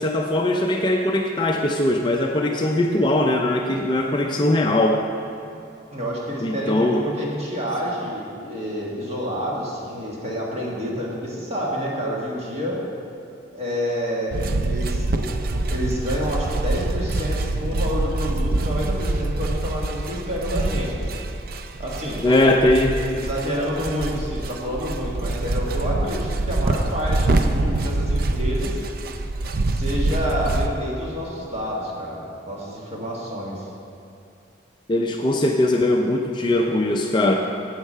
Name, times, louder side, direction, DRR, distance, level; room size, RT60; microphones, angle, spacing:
voice 1, 0.0-5.0 6.4-7.0 22.2-22.9 34.9-37.3, left 1 dB, 25° left, 2 dB, 0.4 m, -20 dB
voice 2, 5.9-12.8 13.5-15.2 15.5-21.1 21.8-22.5 23.1-28.8 29.7-33.7, equal, 30° right, -4 dB, 1.7 m, -28 dB
sound 1, 14.3-30.7, right 2 dB, 50° right, 0.4 m, -25 dB
8.1 x 8.0 x 5.6 m, 2.6 s
head